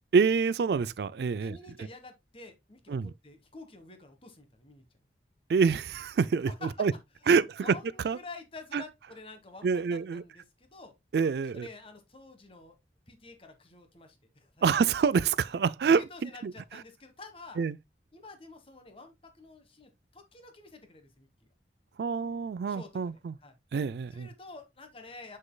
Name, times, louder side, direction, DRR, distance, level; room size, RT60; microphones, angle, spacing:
voice 1, 0.1-1.6 2.9-3.1 5.5-6.5 6.8-6.9 7.3-7.8 8.0-8.2 8.7-8.8 9.6-10.2 11.1-11.7 14.6-16.5 17.6-17.8 22.0-23.4 23.7-24.3, right 5 dB, 70° right, 0.3 m, -26 dB
voice 2, 1.4-4.8 6.4-6.9 7.2-10.9 11.5-12.7 13.1-14.5 15.9-17.6 18.1-21.5 22.7-23.5 24.1-25.4, left 3 dB, 30° left, 1.3 m, -49 dB
7.4 x 6.4 x 2.2 m
head